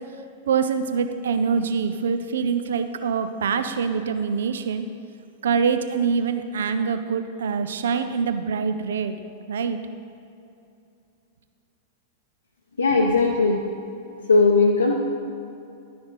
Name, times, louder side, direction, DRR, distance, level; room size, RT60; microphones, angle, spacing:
voice 1, 0.5-4.8 5.4-9.2 9.5-9.8, right 6 dB, 60° right, 9 dB, 0.4 m, -24 dB
voice 2, 12.8-13.6 14.3-15.0, left 3 dB, 75° left, -1 dB, 0.6 m, -18 dB
11.0 x 5.9 x 4.0 m, 2.6 s
figure-of-eight pair, 95°, 0 cm